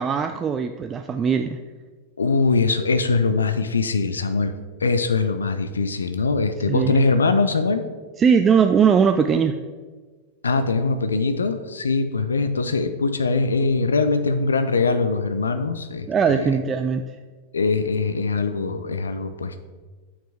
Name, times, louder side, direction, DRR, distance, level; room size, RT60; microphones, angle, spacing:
voice 1, 0.0-1.6 6.7-7.0 8.2-9.6 16.1-17.0, right 6 dB, 20° right, 6 dB, 0.3 m, -20 dB
voice 2, 2.2-4.5 4.8-7.8 10.4-16.5 17.5-19.6, left 4 dB, 75° left, 9 dB, 0.4 m, -22 dB
8.8 x 4.9 x 3.4 m, 1.4 s
figure-of-eight pair, 90°, 0 cm